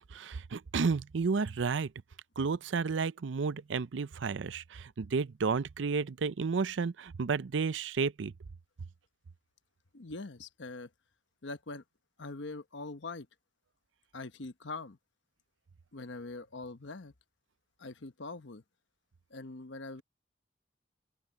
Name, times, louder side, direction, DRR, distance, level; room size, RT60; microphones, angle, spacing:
voice 1, 0.1-1.9 2.4-8.3, right 5 dB, 90° right, 0.5 m, -32 dB
voice 2, 9.9-10.9 11.4-11.8 12.2-13.3 14.1-15.0 15.9-17.1 17.8-18.6 19.3-20.0, left 3 dB, 80° left, 1.0 m, -43 dB
open air
head